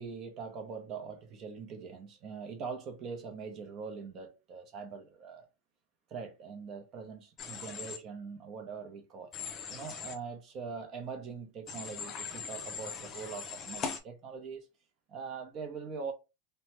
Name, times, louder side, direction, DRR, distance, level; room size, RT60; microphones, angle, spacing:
voice 1, 0.0-5.5 6.1-9.3 9.7-14.7 15.1-16.1, right 5 dB, 35° right, 0.7 m, -42 dB
Human voice / Train, 7.4-8.0 9.3-10.2 11.7-14.0, left 6 dB, 25° left, 0.5 m, -40 dB
3.1 x 2.2 x 2.9 m
supercardioid pair, 150°, 0 cm